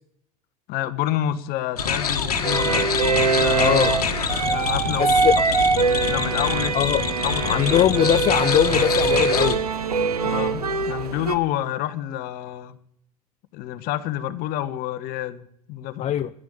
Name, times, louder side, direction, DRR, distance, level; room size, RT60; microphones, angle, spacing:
voice 1, 0.7-3.8 4.4-5.2 6.1-7.0 7.2-7.9 10.2-12.8 13.5-16.1, left 13 dB, 55° left, 12 dB, 1.3 m, -29 dB
sound 1, 1.8-9.6, left 6 dB, 85° left, 1.6 m, -26 dB
sound 2, 2.4-11.3, right 4 dB, 90° right, 1.2 m, -23 dB
voice 2, 3.6-3.9 5.0-5.3 6.7-7.0 7.4-9.6 16.0-16.3, left 11 dB, 35° left, 12 dB, 0.6 m, -21 dB
11.5 x 11.0 x 8.7 m, 0.71 s
hypercardioid pair, 75°, 19 cm